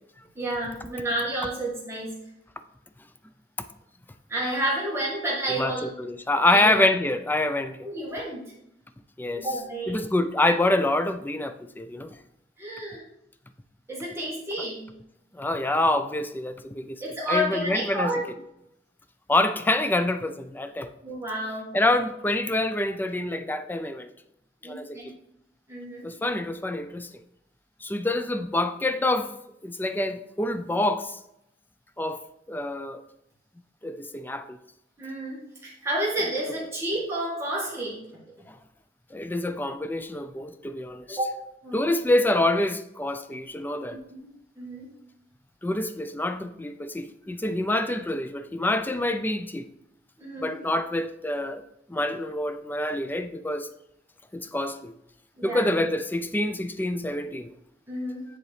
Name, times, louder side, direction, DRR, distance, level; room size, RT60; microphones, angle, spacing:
voice 1, 0.4-2.1 4.3-5.9 6.4-6.7 7.8-8.5 9.3-10.0 12.6-13.0 13.9-14.9 17.0-18.2 21.0-21.7 24.6-25.1 25.7-26.1 35.0-38.0 41.1-41.3 41.6-41.8 43.9-44.3 44.6-44.9 50.2-50.6 55.4-55.7 57.9-58.2, right 1 dB, 15° right, 1.8 m, -30 dB
voice 2, 5.6-7.9 9.2-9.5 9.9-12.2 15.3-17.0 17.3-18.1 19.3-20.9 21.7-24.1 24.6-25.1 26.0-27.1 27.8-29.3 29.6-31.2 32.0-32.2 32.5-33.0 33.8-34.6 38.5-38.6 39.1-41.2 41.7-44.0 45.6-49.6 50.4-51.6 51.9-53.7 54.3-54.9 55.4-57.5, left 1 dB, 10° left, 0.4 m, -26 dB
9.7 x 3.9 x 3.3 m
head